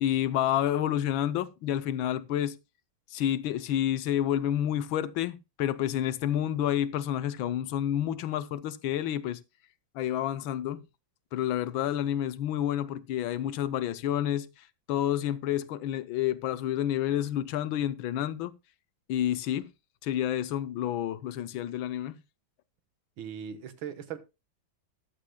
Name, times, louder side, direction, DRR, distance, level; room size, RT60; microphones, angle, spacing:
voice 1, 0.0-2.6 3.1-9.4 9.9-10.8 11.3-14.5 14.9-18.5 19.1-19.7 20.0-22.2, left 11 dB, 85° left, 1.6 m, -29 dB
voice 2, 23.2-24.2, right 8 dB, 80° right, 2.0 m, -39 dB
14.5 x 11.5 x 2.2 m
omnidirectional pair, 2.1 m